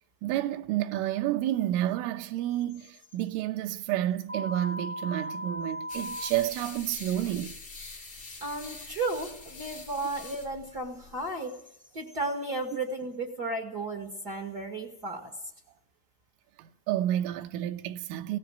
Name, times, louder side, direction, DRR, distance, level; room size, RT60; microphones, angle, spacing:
voice 1, 0.2-7.6 16.6-18.4, right 13 dB, 90° right, 3.5 m, -30 dB
sound 1, 4.3-6.3, equal, 5° right, 3.0 m, -37 dB
sound 2, 5.9-11.3, left 3 dB, 25° left, 4.6 m, -45 dB
voice 2, 8.4-11.6 11.9-15.3, right 2 dB, 70° right, 0.9 m, -34 dB
18.0 x 17.0 x 9.1 m
omnidirectional pair, 5.6 m